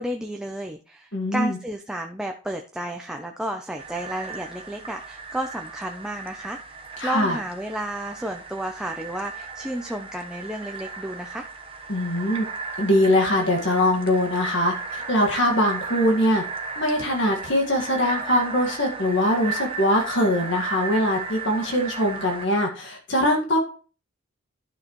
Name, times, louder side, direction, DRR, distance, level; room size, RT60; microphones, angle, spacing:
voice 1, 0.0-11.5, right 1 dB, 5° right, 3 dB, 0.6 m, -32 dB
voice 2, 1.1-1.6 7.0-7.4 11.9-12.5 12.8-16.4 16.8-23.6, left 1 dB, 60° left, 2 dB, 1.7 m, -22 dB
sound 1, 3.8-22.5, right 4 dB, 25° right, 1.0 m, -36 dB
11.5 x 6.3 x 3.1 m, 0.38 s
head